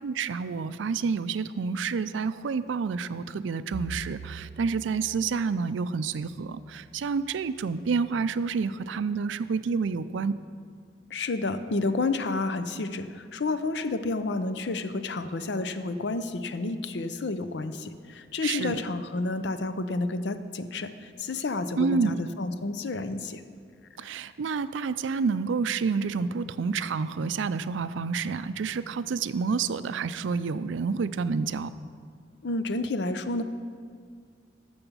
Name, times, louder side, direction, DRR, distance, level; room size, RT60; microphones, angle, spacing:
voice 1, 0.0-10.3 18.4-18.8 21.8-22.2 24.0-31.7, right 5 dB, 80° right, 14 dB, 0.4 m, -29 dB
Bowed string instrument, 3.7-8.1, right 2 dB, 55° right, 0.8 m, -45 dB
voice 2, 11.1-20.9 21.2-23.4 32.4-33.4, left 3 dB, 65° left, 11 dB, 0.5 m, -30 dB
12.5 x 7.0 x 5.5 m, 2.1 s
head